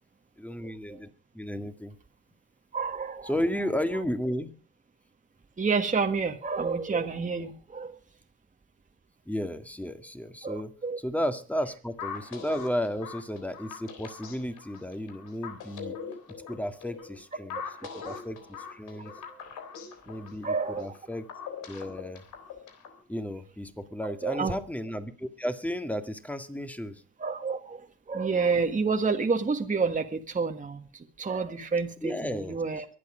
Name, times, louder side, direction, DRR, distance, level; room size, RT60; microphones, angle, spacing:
voice 1, 0.4-1.1 1.3-2.0 3.2-4.5 9.3-10.7 11.0-16.0 16.5-17.6 18.0-18.4 18.7-19.6 20.1-21.2 21.7-22.2 23.1-27.0 32.0-32.6, equal, 5° left, 8 dB, 2.0 m, -33 dB
voice 2, 2.7-3.3 5.6-8.0 10.4-11.0 17.8-18.2 20.4-21.0 24.0-24.6 27.2-32.8, right 4 dB, 25° right, 5 dB, 1.6 m, -29 dB
sound 1, 12.0-23.0, left 6 dB, 85° left, 3.6 m, -42 dB
23.5 x 8.6 x 5.0 m, 0.39 s
cardioid pair, 90°, 30 cm